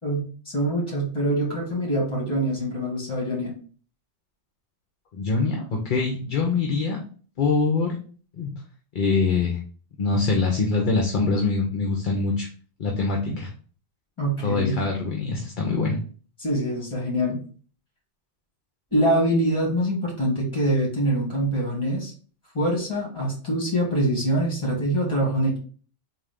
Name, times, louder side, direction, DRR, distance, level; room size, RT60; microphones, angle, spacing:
voice 1, 0.0-3.5 13.3-13.4 14.2-14.8 16.4-17.4 18.9-22.1 22.5-25.6, right 1 dB, 25° left, -3 dB, 1.9 m, -24 dB
voice 2, 5.1-7.0 7.4-8.0 8.4-8.5 8.9-9.6 10.0-12.5 12.8-13.5 14.4-16.0, left 4 dB, 50° left, 1 dB, 0.7 m, -24 dB
3.8 x 2.6 x 3.5 m, 0.41 s
omnidirectional pair, 1.2 m